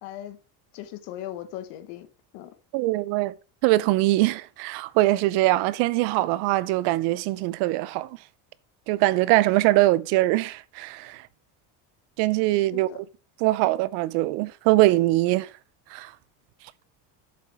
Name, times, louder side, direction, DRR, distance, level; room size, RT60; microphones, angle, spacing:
voice 1, 0.0-0.4 0.7-2.1 2.3-2.5 12.5-13.0, left 12 dB, 85° left, 1.5 m, -38 dB
voice 2, 2.7-3.3 3.6-8.2 8.9-11.2 12.2-13.0 13.4-15.5 15.9-16.1, right 18 dB, 80° right, 0.7 m, -22 dB
8.6 x 7.1 x 3.6 m
cardioid pair, 175°, 40 cm